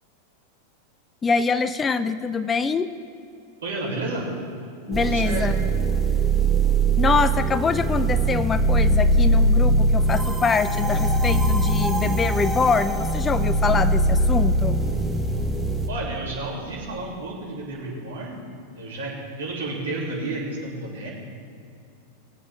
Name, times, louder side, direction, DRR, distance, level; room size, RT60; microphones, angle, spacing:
voice 1, 1.2-2.9 4.9-5.5 7.0-14.8, left 5 dB, 20° left, 12 dB, 0.4 m, -24 dB
voice 2, 3.6-4.3 4.9-5.4 15.9-18.4 18.8-21.1, right 2 dB, 65° right, -4 dB, 2.9 m, -31 dB
sound 1, 4.9-15.9, right 2 dB, ahead, 1.1 m, -21 dB
20.5 x 8.2 x 3.6 m, 2.5 s
figure-of-eight pair, 90°, 0 cm